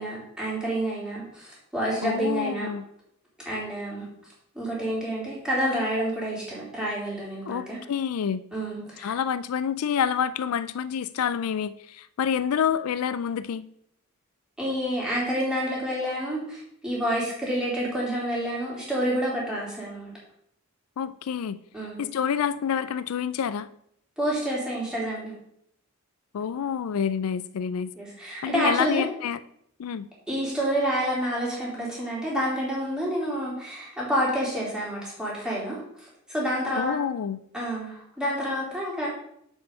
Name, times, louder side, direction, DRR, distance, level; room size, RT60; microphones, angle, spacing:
voice 1, 0.0-2.7 3.4-4.1 4.5-7.8 8.5-9.1 14.6-20.1 21.7-22.0 24.2-25.3 27.9-29.0 30.3-35.8 36.3-37.0 37.5-39.1, equal, 5° right, -6 dB, 3.0 m, -28 dB
voice 2, 2.0-2.8 7.4-8.4 9.0-13.6 21.0-21.6 22.0-23.7 26.3-27.9 28.4-29.4 29.8-30.1 36.8-37.4, left 8 dB, 85° left, 15 dB, 0.4 m, -28 dB
7.1 x 5.3 x 5.5 m, 0.72 s
head